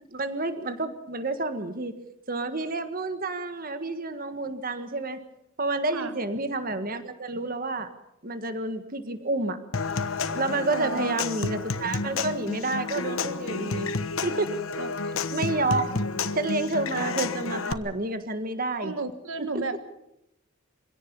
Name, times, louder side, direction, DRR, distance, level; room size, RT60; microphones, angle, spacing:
voice 1, 0.1-1.9 2.3-5.2 5.6-7.9 8.2-9.6 10.3-13.9 14.2-14.6 15.3-15.9 16.3-18.9 19.4-19.6, right 2 dB, 45° right, 9 dB, 1.7 m, -29 dB
Human voice / Acoustic guitar / Percussion, 9.7-17.7, left 4 dB, 85° left, 1.2 m, -30 dB
voice 2, 10.7-11.2 14.8-14.9 18.8-19.9, right 3 dB, 75° right, 9 dB, 1.3 m, -33 dB
25.0 x 17.0 x 7.0 m, 0.85 s
head